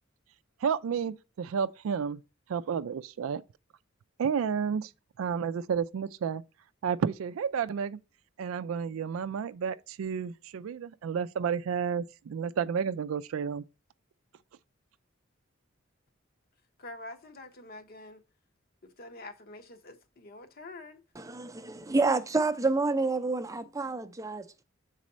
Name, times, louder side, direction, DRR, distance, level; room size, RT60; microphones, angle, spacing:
voice 1, 0.6-2.2 2.5-3.4 4.2-4.9 5.2-6.4 6.8-8.0 8.4-13.6, right 7 dB, 90° right, 0.4 m, -31 dB
voice 2, 16.8-18.2 18.8-21.0, left 2 dB, 50° left, 0.8 m, -46 dB
voice 3, 21.2-24.6, right 3 dB, 15° right, 0.5 m, -29 dB
6.2 x 4.1 x 4.1 m
head